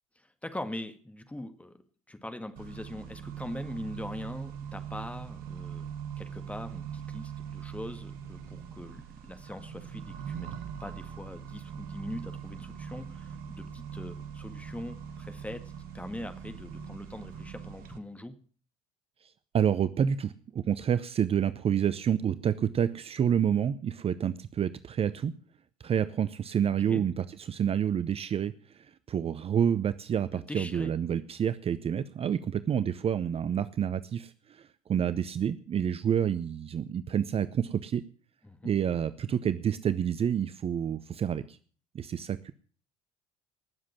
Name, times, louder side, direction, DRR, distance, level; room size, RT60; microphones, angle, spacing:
voice 1, 0.4-1.8 2.1-5.9 6.2-10.5 10.8-18.3 26.8-27.0 30.3-30.9 38.4-38.7, left 1 dB, 10° left, 8 dB, 2.0 m, -42 dB
Accelerating revving vroom, 2.6-18.0, right 8 dB, 60° right, 1.7 m, -41 dB
voice 2, 19.2-25.3 25.8-38.0 38.6-41.6 41.9-42.5, right 8 dB, 35° right, 14 dB, 0.7 m, -29 dB
18.5 x 7.5 x 7.3 m, 0.43 s
figure-of-eight pair, 60°, 17 cm